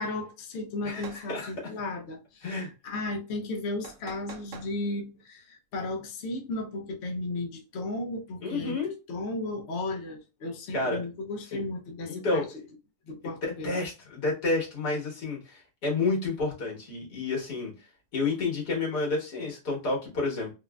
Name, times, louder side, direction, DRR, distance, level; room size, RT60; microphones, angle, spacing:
voice 1, 0.0-2.5 2.8-8.8 9.1-12.4 13.1-13.8, left 2 dB, 55° left, 0.8 m, -34 dB
voice 2, 0.8-1.5 2.4-2.7 8.4-8.9 10.7-11.0 11.5-11.6 12.0-12.6 13.6-17.7 18.1-20.5, left 3 dB, 80° left, 2.0 m, -30 dB
sound 1, 0.9-1.3 3.8-4.7, right 5 dB, 65° right, 0.9 m, -45 dB
4.0 x 2.1 x 2.3 m
omnidirectional pair, 1.7 m